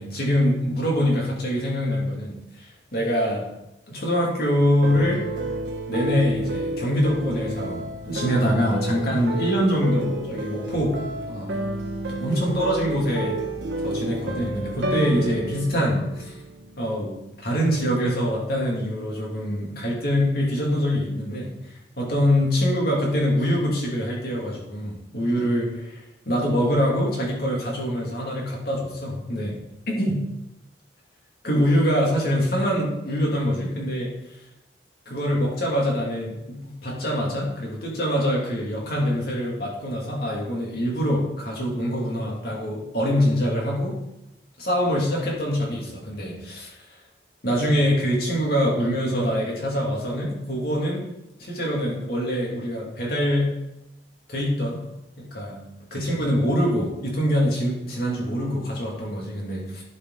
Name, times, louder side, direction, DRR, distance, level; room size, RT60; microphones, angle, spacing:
voice 1, 0.0-3.4 3.9-5.3 5.9-11.6 12.0-13.4 13.8-16.4 16.8-29.6 29.9-30.2 31.4-34.1 35.1-44.0 44.6-46.7 47.4-51.1 51.4-53.6 54.3-54.9 55.2-59.8, equal, 55° left, -3 dB, 2.6 m, -24 dB
sound 1, 4.8-17.0, right 1 dB, 75° right, 1.1 m, -31 dB
11.5 x 5.4 x 4.0 m, 0.89 s
head